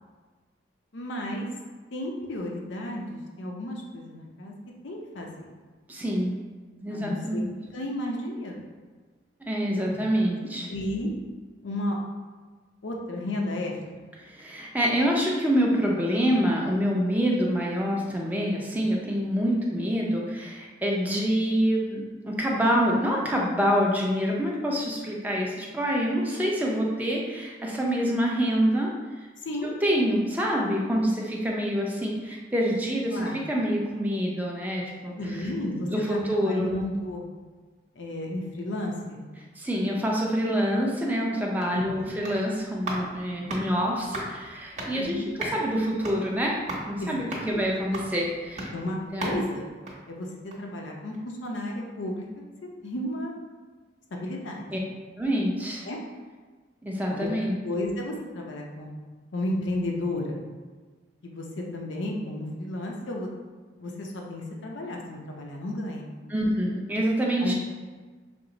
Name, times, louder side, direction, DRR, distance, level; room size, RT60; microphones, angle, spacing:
voice 1, 0.9-1.5 1.9-4.5 4.8-5.4 6.9-7.4 7.7-8.6 9.8-10.0 10.7-11.1 11.6-12.0 12.8-14.1 29.4-29.7 33.1-33.4 35.2-37.2 38.0-39.3 41.7-42.1 45.0-45.3 47.0-47.6 48.7-49.7 50.1-52.3 52.8-53.3 54.1-54.7 55.8-56.0 57.1-57.3 57.6-58.9 59.3-60.4 61.2-63.3 63.8-66.1 67.4-67.5, left 1 dB, 80° left, 0 dB, 0.6 m, -33 dB
voice 2, 5.9-6.3 6.8-7.5 9.5-10.7 14.2-28.9 29.2-29.3 29.8-35.5 35.8-36.7 39.6-46.6 46.9-48.7 49.1-49.4 54.7-54.8 55.2-55.8 56.8-57.6 66.3-67.5, equal, 10° right, -2 dB, 0.5 m, -26 dB
sound 1, 41.5-50.8 51.1-51.2, right 1 dB, 35° right, 1.0 m, -38 dB
6.0 x 2.0 x 3.8 m, 1.4 s
head